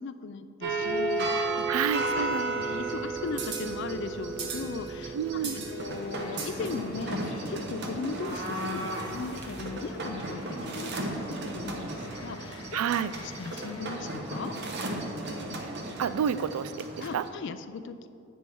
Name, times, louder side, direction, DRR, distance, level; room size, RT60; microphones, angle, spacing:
voice 1, 0.0-1.7 2.0-2.3 2.5-11.0 11.3-12.8 13.2-14.5 17.0-18.1, left 4 dB, 55° left, 11 dB, 0.3 m, -38 dB
sound 1, 0.6-17.3, right 2 dB, 50° right, 0.8 m, -34 dB
voice 2, 1.7-2.6 5.1-5.6 12.7-13.1 15.6-15.7 16.0-17.3, right 7 dB, 80° right, 14 dB, 0.3 m, -29 dB
sound 2, 6.1-14.1, left 2 dB, 90° left, 0.9 m, -47 dB
8.1 x 5.5 x 4.5 m, 2.6 s
head